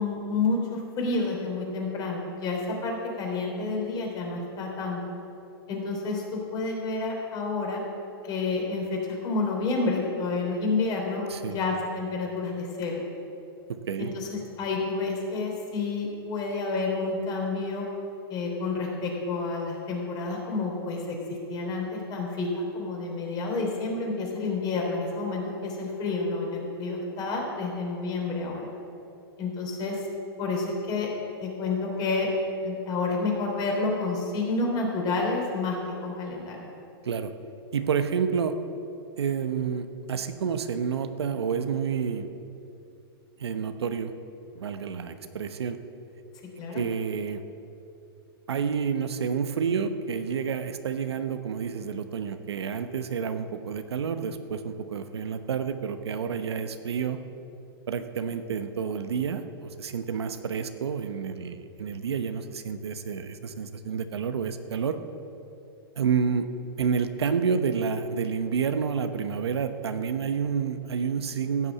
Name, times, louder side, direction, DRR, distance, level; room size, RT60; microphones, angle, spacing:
voice 1, 0.0-5.0 5.7-7.8 8.2-13.0 14.0-17.9 18.3-28.7 29.4-30.0 30.4-31.1 31.4-32.3 32.6-36.7 46.6-46.9, left 3 dB, 30° left, 0 dB, 3.5 m, -29 dB
voice 2, 13.7-14.1 37.0-37.3 37.7-38.6 39.2-42.3 43.4-44.1 44.5-45.8 46.7-47.4 48.5-57.2 57.9-65.0 66.0-66.5 66.8-71.7, right 6 dB, 90° right, 9 dB, 1.0 m, -29 dB
15.5 x 6.8 x 8.4 m, 2.8 s
hypercardioid pair, 135°, 13 cm